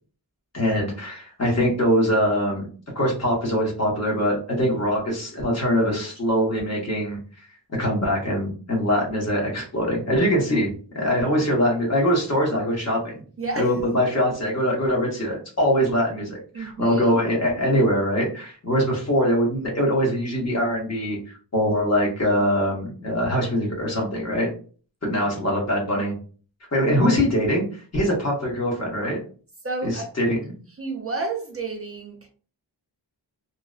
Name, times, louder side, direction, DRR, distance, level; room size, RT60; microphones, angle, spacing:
voice 1, 0.5-2.7 2.9-7.2 7.8-13.1 13.6-21.2 21.5-24.5 25.0-26.2 26.7-29.2 29.8-30.5, equal, 35° left, -2 dB, 1.0 m, -23 dB
voice 2, 13.4-13.7 16.5-17.0 29.6-30.1 30.8-32.3, right 3 dB, 35° right, 2 dB, 0.4 m, -30 dB
2.7 x 2.0 x 2.3 m, 0.40 s
wide cardioid pair, 140°, 44 cm